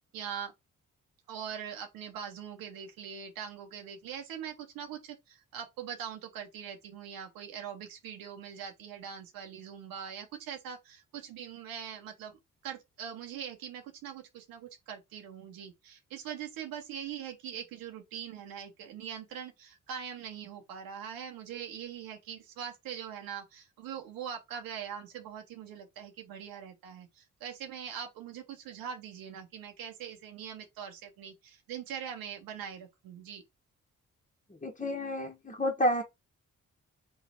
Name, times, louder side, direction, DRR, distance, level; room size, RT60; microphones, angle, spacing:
voice 1, 0.1-0.5 1.3-12.4 12.6-33.4, right 8 dB, 85° right, 0.9 m, -42 dB
voice 2, 34.6-36.0, equal, 20° left, 1.5 m, -30 dB
3.8 x 3.2 x 4.4 m
supercardioid pair, 50°, 34 cm